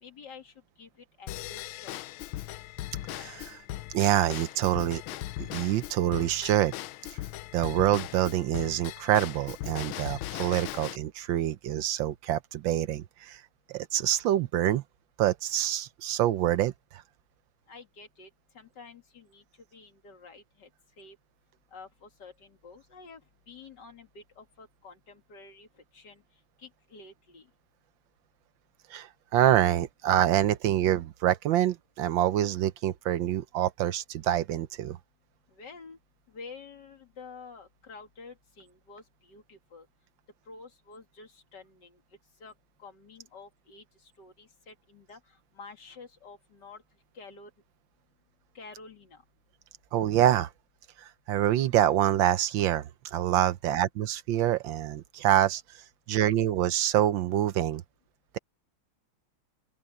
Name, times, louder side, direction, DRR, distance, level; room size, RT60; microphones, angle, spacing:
voice 1, 0.0-2.0 17.7-18.3 18.5-19.4 19.7-20.7 21.0-21.2 21.7-23.2 23.5-25.7 25.9-26.2 26.6-27.5 35.5-36.0 36.3-39.9 40.5-42.0 42.4-42.5 42.8-46.8 47.1-47.5 48.5-49.2, left 4 dB, 55° left, 2.7 m, -49 dB
Drum kit / Drum / Bell, 1.3-11.0, left 15 dB, 80° left, 1.4 m, -39 dB
voice 2, 3.1-3.6 3.9-5.0 5.4-6.7 7.5-13.4 13.7-14.8 15.2-16.7 28.9-35.0 49.9-50.5 51.3-55.6 56.1-57.8, right 12 dB, 75° right, 1.3 m, -26 dB
open air
omnidirectional pair, 2.2 m